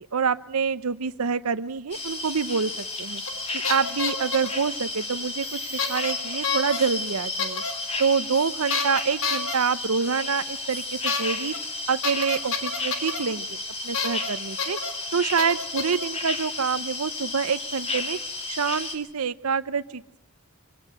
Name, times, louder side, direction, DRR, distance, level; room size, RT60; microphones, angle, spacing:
voice 1, 0.0-2.7 3.0-3.2 3.7-5.6 5.9-7.6 8.0-11.5 11.9-13.6 13.8-14.8 15.1-18.2 18.5-20.2, right 6 dB, 85° right, 11 dB, 0.7 m, -26 dB
sound 1, 1.9-19.0, left 2 dB, 30° left, 2.4 m, -33 dB
sound 2, 3.3-3.4 3.6-4.6 5.8-6.1 6.4-6.8 7.4-7.7 8.7-9.5 11.1-11.2 11.5-11.6 12.0-13.2 13.9-14.3 14.6-14.9 15.4-16.0, left 5 dB, 65° left, 3.6 m, -28 dB
24.5 x 17.5 x 7.8 m, 0.87 s
head